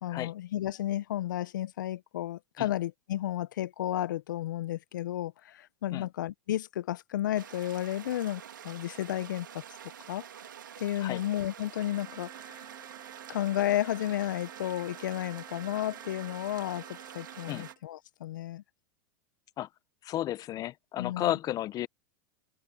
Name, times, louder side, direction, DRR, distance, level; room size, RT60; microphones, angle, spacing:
voice 1, 0.0-9.6 10.1-10.2 10.8-12.7 13.3-18.6 21.0-21.4, left 13 dB, 80° left, 0.6 m, -32 dB
sound 1, 7.3-17.7, right 9 dB, 90° right, 3.0 m, -47 dB
Trumpet, 11.8-17.8, right 10 dB, 30° right, 6.9 m, -50 dB
voice 2, 20.0-21.9, left 13 dB, 35° left, 0.8 m, -33 dB
hypercardioid pair, 105°, 10 cm